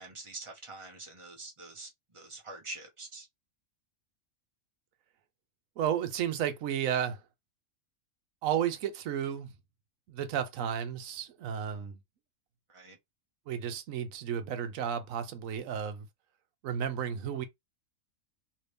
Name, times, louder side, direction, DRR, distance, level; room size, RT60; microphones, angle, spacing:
voice 1, 0.0-3.3 12.7-13.0, right 2 dB, 30° right, 0.8 m, -45 dB
voice 2, 5.8-7.2 8.4-9.5 10.1-12.0 13.5-16.1 16.6-17.4, right 9 dB, 80° right, 1.0 m, -32 dB
2.9 x 2.7 x 3.3 m
omnidirectional pair, 1.4 m